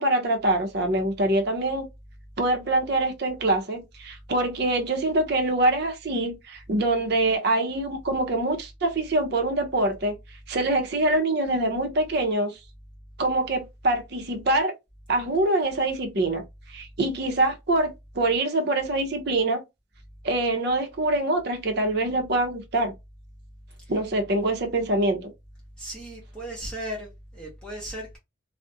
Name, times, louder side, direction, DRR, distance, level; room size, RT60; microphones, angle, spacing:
voice 1, 0.0-1.9 2.4-10.1 10.5-12.6 13.2-14.7 15.1-16.4 16.7-19.6 20.2-22.9 23.9-25.3, right 2 dB, 55° right, 0.6 m, -24 dB
voice 2, 25.8-28.2, right 1 dB, 5° left, 0.7 m, -36 dB
2.4 x 2.0 x 2.6 m
head